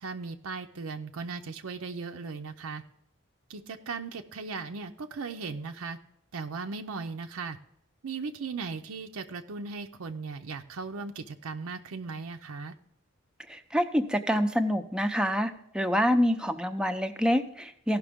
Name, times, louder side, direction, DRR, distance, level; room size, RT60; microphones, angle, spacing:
voice 1, 0.0-2.8 3.5-6.0 6.3-7.6 8.0-12.7, right 4 dB, 80° right, 5 dB, 0.6 m, -37 dB
voice 2, 13.5-18.0, equal, 5° right, 7 dB, 0.5 m, -26 dB
16.0 x 5.9 x 3.5 m, 0.75 s
head